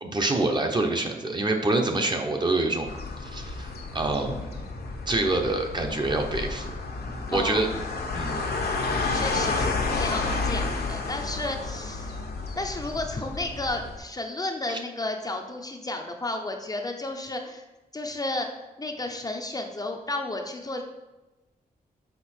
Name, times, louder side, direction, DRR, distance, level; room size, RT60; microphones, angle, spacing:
voice 1, 0.0-2.9 3.2-4.5 5.1-6.7 7.0-7.7 8.1-8.4 14.7-14.8, right 2 dB, 30° right, 3 dB, 0.8 m, -26 dB
sound 1, 2.9-14.0, left 3 dB, 80° left, 1.0 m, -31 dB
voice 2, 7.3-7.7 9.1-12.2 12.6-17.6 17.9-18.5 18.8-20.8, left 2 dB, 25° left, 3 dB, 0.6 m, -32 dB
6.7 x 4.9 x 4.3 m, 1.1 s
wide cardioid pair, 150°, 16 cm